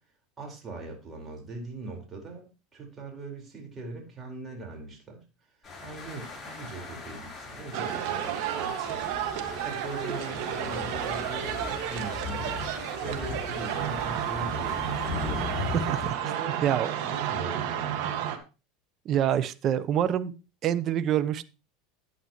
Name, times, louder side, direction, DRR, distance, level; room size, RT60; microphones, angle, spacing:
voice 1, 0.4-5.2 5.8-9.0 9.5-12.6 13.0-15.5 16.2-16.6 17.0-18.1, right 3 dB, 25° right, 0 dB, 4.5 m, -40 dB
sound 1, 5.6-16.1, left 4 dB, 20° left, 6.5 m, -38 dB
sound 2, 7.7-18.4, right 10 dB, 65° right, 1.7 m, -32 dB
voice 2, 15.9-16.2 16.6-16.9 19.0-20.3 20.6-21.4, right 10 dB, 45° right, 14 dB, 0.8 m, -26 dB
11.5 x 9.0 x 3.1 m, 0.30 s
hypercardioid pair, 90°, 0 cm